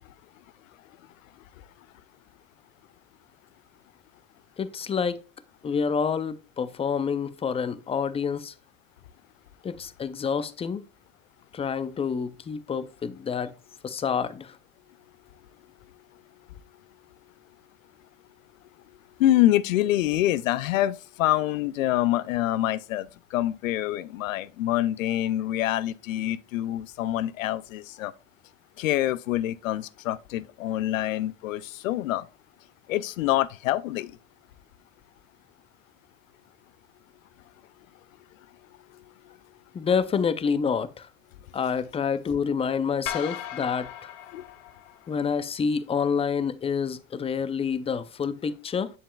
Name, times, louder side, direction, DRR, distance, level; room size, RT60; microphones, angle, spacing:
voice 1, 4.6-5.2 5.6-8.5 9.6-10.8 11.5-13.5 13.8-14.6 39.7-41.1 41.5-44.1 45.1-48.9, left 6 dB, 15° left, 0.4 m, -28 dB
voice 2, 19.2-28.1 28.8-32.3 32.9-34.1 39.3-39.4 44.3-44.4, left 14 dB, 85° left, 0.5 m, -26 dB
sound 1, 43.1-45.4, left 11 dB, 65° left, 0.9 m, -37 dB
7.3 x 7.2 x 2.3 m
hypercardioid pair, 80°, 39 cm